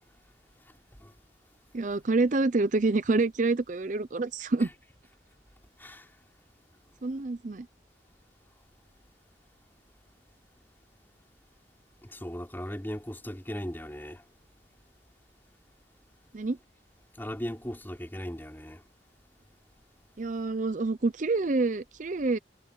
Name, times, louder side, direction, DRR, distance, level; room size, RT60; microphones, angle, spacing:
voice 1, 1.7-4.7 7.0-7.7 16.3-16.6 20.2-22.4, right 3 dB, 45° right, 0.6 m, -27 dB
voice 2, 12.0-14.2 17.2-18.8, equal, 10° left, 3.5 m, -37 dB
head